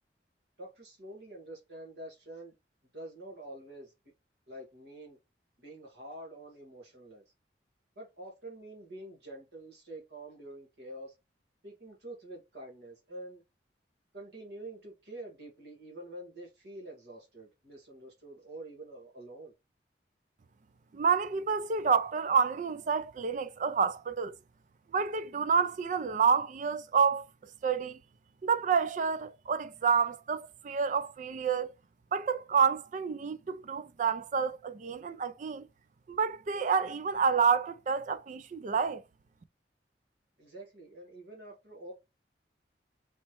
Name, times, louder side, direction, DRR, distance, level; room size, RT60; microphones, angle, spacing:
voice 1, 0.6-2.5 2.9-3.9 4.5-5.2 5.6-7.2 7.9-11.1 11.6-13.4 14.1-19.5 40.4-41.9, right 1 dB, 70° right, 1.7 m, -47 dB
voice 2, 20.9-24.3 24.9-27.3 27.6-28.0 28.4-31.7 32.1-35.7 36.1-39.0, right 6 dB, 45° right, 0.3 m, -29 dB
4.3 x 3.1 x 2.9 m
head